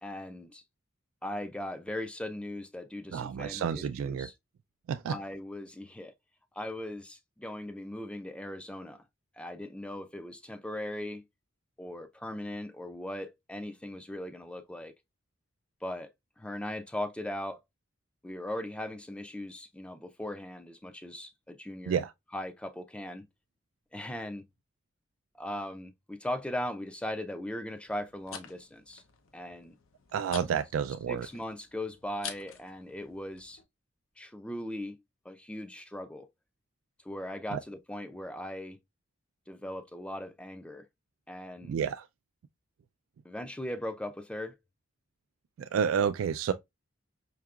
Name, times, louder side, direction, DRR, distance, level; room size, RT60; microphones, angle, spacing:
voice 1, 0.0-0.6 1.2-4.3 5.1-6.1 6.6-9.0 9.4-11.2 11.8-14.9 15.8-16.1 16.4-17.6 18.2-22.0 22.3-23.3 23.9-24.5 25.4-29.0 29.3-29.8 31.1-33.6 34.2-35.0 35.2-36.3 37.0-38.8 39.5-40.9 41.3-41.8 43.2-44.5, left 1 dB, 5° left, 0.4 m, -39 dB
voice 2, 3.1-4.3 4.9-5.1 21.9-22.1 30.1-31.3 37.5-37.6 41.7-42.0 45.6-46.5, right 7 dB, 85° right, 0.3 m, -30 dB
sound 1, 27.8-33.6, left 7 dB, 80° left, 0.7 m, -48 dB
4.7 x 2.8 x 2.3 m
head